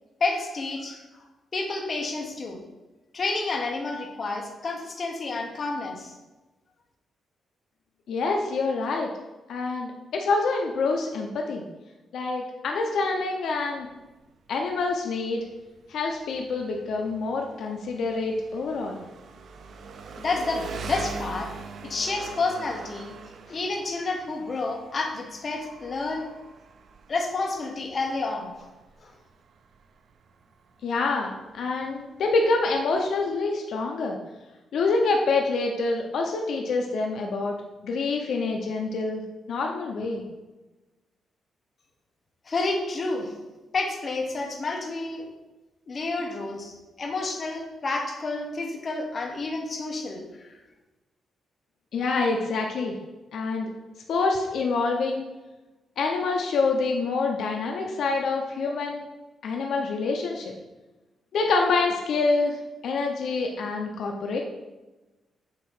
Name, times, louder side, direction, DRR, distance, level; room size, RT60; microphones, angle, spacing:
voice 1, 0.2-1.0 1.5-2.6 3.1-6.1 20.2-21.5 21.8-23.1 23.5-26.2 27.1-28.5 29.0-29.1 42.5-43.3 43.7-45.3 45.9-50.3, left 3 dB, 35° left, 1 dB, 1.0 m, -29 dB
voice 2, 8.1-9.1 9.5-11.6 12.1-13.9 14.5-15.4 15.9-19.0 30.8-34.2 34.7-37.6 37.8-39.2 39.5-40.2 51.9-53.0 53.3-53.7 54.1-55.2 56.0-59.1 59.4-60.5 61.3-62.6 62.8-64.4, left 3 dB, 65° left, 1 dB, 0.7 m, -26 dB
Engine, 13.8-33.4, right 4 dB, 55° right, 0.5 m, -43 dB
7.7 x 2.8 x 5.5 m, 1.1 s
wide cardioid pair, 160°, 0 cm